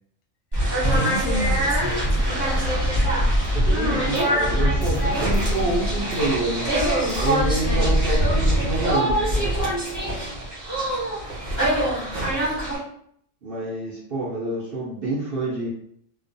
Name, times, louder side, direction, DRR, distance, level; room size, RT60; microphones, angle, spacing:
sound 1, 0.5-12.8, right 1 dB, 20° right, 0.8 m, -23 dB
voice 1, 0.6-2.8, equal, 90° left, 1 dB, 1.0 m, -31 dB
sound 2, 1.9-10.4, left 2 dB, 65° left, 0.8 m, -41 dB
voice 2, 3.5-6.7 7.2-9.2 13.4-15.7, right 2 dB, 55° right, -7 dB, 0.8 m, -27 dB
2.4 x 2.2 x 2.5 m, 0.69 s
omnidirectional pair, 1.3 m